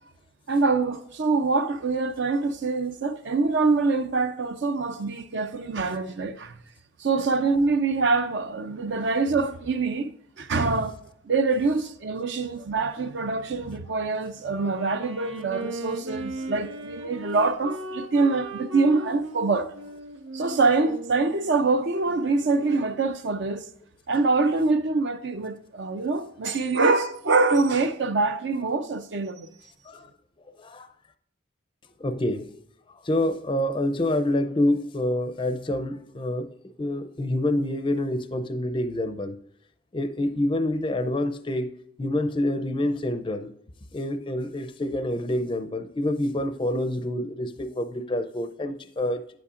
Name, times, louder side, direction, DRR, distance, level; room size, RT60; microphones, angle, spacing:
voice 1, 0.5-6.6 7.0-10.1 10.4-11.0 11.2-19.7 20.3-23.7 24.1-29.5, right 3 dB, 60° right, 0.5 m, -25 dB
Wind instrument woodwind instrument, 14.4-23.1, right 2 dB, 80° right, 1.5 m, -38 dB
voice 2, 30.6-30.9 32.0-32.5 33.0-36.5 36.8-39.4 39.9-41.7 42.0-43.5 43.9-49.2, left 1 dB, 25° left, 0.5 m, -27 dB
8.7 x 8.4 x 2.5 m
head